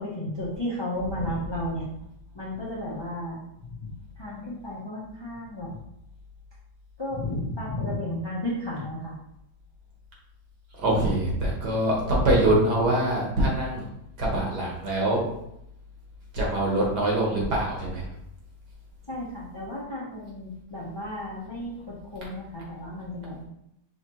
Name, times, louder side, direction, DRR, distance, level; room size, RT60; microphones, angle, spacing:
voice 1, 0.0-1.9 2.3-3.4 3.8-3.9 4.2-5.8 7.0-9.1 19.1-23.4, left 1 dB, 25° left, -6 dB, 0.5 m, -33 dB
voice 2, 10.7-13.9 14.2-15.3 16.3-18.1, right 1 dB, 65° right, -3 dB, 1.8 m, -24 dB
5.6 x 3.0 x 3.0 m, 0.79 s
omnidirectional pair, 2.0 m